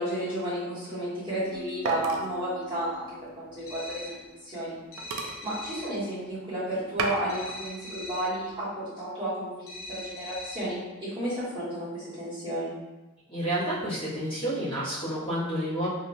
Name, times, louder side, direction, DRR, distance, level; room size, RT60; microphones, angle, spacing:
voice 1, 0.0-3.1 3.4-4.2 4.4-4.8 5.4-12.7, right 1 dB, 25° right, -12 dB, 1.5 m, -32 dB
sound 1, 1.3-4.3 4.7-4.8 5.0-6.4 6.7-7.6 8.1-8.6, right 3 dB, 70° right, 0.4 m, -36 dB
sound 2, 1.5-5.1, left 5 dB, 5° right, 1.1 m, -49 dB
sound 3, 3.6-4.3 4.9-6.0 7.3-8.4 9.7-10.8, left 1 dB, 70° left, 0.7 m, -41 dB
voice 2, 13.3-15.9, right 1 dB, 25° left, -13 dB, 1.4 m, -30 dB
3.0 x 2.7 x 2.6 m, 1.1 s
head